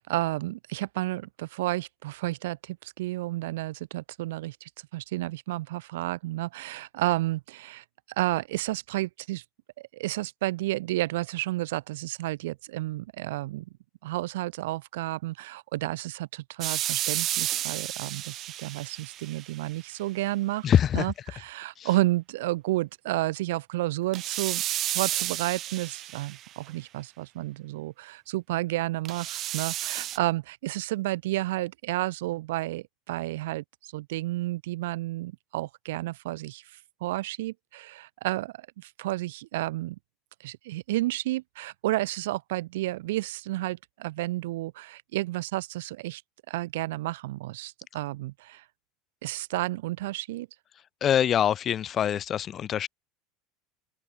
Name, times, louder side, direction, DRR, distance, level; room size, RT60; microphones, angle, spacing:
voice 1, 0.0-7.8 8.2-9.4 9.8-13.7 14.0-20.7 20.9-24.6 24.9-36.6 37.0-40.0 40.4-46.2 46.5-48.6 49.2-50.5, right 17 dB, 90° right, 4.9 m, -31 dB
sound 1, 16.6-19.7 24.1-26.7 29.0-30.2, right 13 dB, 40° right, 4.1 m, -31 dB
voice 2, 20.6-21.1 21.8-21.9 51.0-52.9, left 9 dB, 30° left, 3.8 m, -24 dB
supercardioid pair, 150°, 0 cm